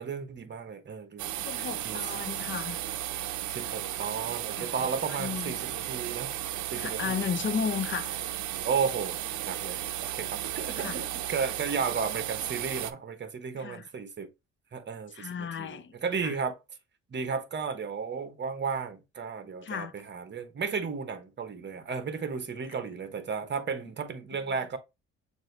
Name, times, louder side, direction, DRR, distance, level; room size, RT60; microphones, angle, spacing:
voice 1, 0.0-2.1 2.5-2.6 3.5-6.3 6.7-7.2 8.6-14.3 14.7-16.6 17.1-24.8, right 5 dB, 35° right, 1.0 m, -34 dB
sound 1, 1.2-12.9, right 12 dB, 70° right, 0.6 m, -34 dB
voice 2, 1.4-2.8 4.5-4.9 5.2-5.6 6.7-8.2 10.8-11.0 13.5-13.9 15.1-16.4 19.6-19.9, left 7 dB, 40° left, 0.6 m, -34 dB
6.2 x 2.6 x 3.2 m
cardioid pair, 90°, 30 cm